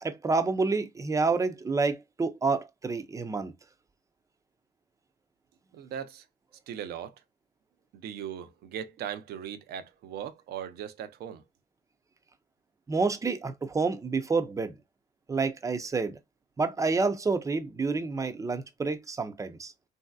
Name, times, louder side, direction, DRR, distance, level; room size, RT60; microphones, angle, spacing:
voice 1, 0.0-3.5 12.9-14.8 15.3-16.2 16.6-19.7, right 4 dB, 20° right, 0.5 m, -28 dB
voice 2, 5.7-6.2 6.7-7.1 7.9-11.4, right 9 dB, 70° right, 0.6 m, -38 dB
3.1 x 2.7 x 2.3 m
cardioid pair, 110°, 17 cm